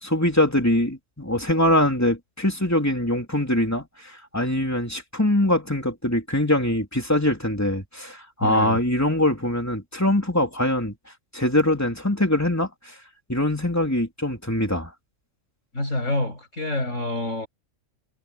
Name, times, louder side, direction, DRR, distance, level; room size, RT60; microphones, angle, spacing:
voice 1, 0.0-11.0 11.3-12.7 13.3-14.9, left 1 dB, 10° left, 3.4 m, -23 dB
voice 2, 8.4-8.8 15.7-17.5, left 1 dB, 80° left, 7.5 m, -27 dB
omnidirectional pair, 1.3 m